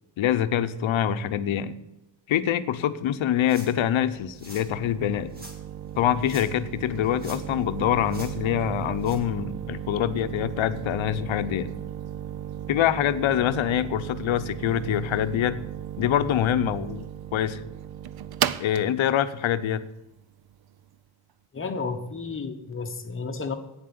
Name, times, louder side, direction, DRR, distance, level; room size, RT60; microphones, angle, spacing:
voice 1, 0.2-1.8 2.3-5.3 6.0-11.7 12.7-15.6 16.0-17.6 18.6-19.8, left 10 dB, 75° left, 12 dB, 0.8 m, -25 dB
sound 1, 3.4-3.9 4.3-4.7 5.3-5.6 6.2-6.7 7.0-7.6 8.1-8.3 9.0-9.2, equal, 20° right, 2.3 m, -45 dB
sound 2, 3.4-20.9, right 10 dB, 50° right, 0.5 m, -36 dB
voice 2, 21.5-23.5, left 4 dB, 25° left, 5 dB, 1.0 m, -32 dB
8.8 x 7.6 x 8.7 m, 0.91 s
wide cardioid pair, 165°, 48 cm